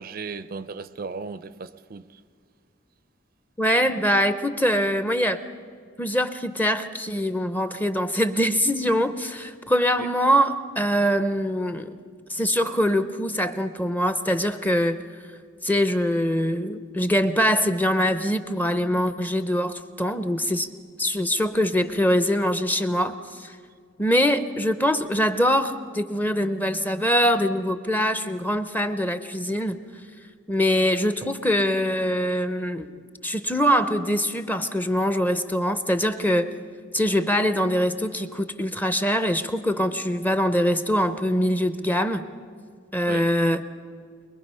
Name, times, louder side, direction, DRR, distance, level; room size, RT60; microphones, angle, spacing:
voice 1, 0.0-2.2 10.0-10.1 43.1-43.3, right 4 dB, 45° right, 0.5 m, -36 dB
voice 2, 3.6-5.4 6.0-12.0 12.3-15.0 15.6-20.7 21.0-23.5 24.0-29.8 30.5-32.9 33.2-36.5 36.9-42.2 42.9-43.6, equal, 10° left, 0.6 m, -23 dB
23.5 x 21.5 x 5.5 m
head